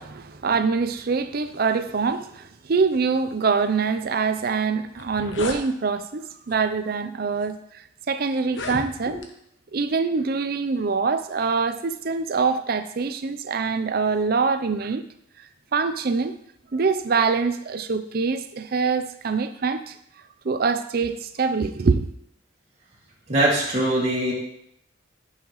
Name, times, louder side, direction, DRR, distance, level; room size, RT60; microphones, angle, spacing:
voice 1, 0.0-9.2 9.7-15.0 15.7-16.4 16.7-19.9 20.4-22.1, right 4 dB, 50° right, 11 dB, 0.5 m, -24 dB
sound 1, 4.5-4.6 4.9-5.6 6.5-6.7 7.4-7.5 8.4-9.3, left 3 dB, 70° left, 0.9 m, -34 dB
voice 2, 23.3-24.3, right 1 dB, 35° right, -6 dB, 2.2 m, -22 dB
11.0 x 5.7 x 3.1 m, 0.73 s
head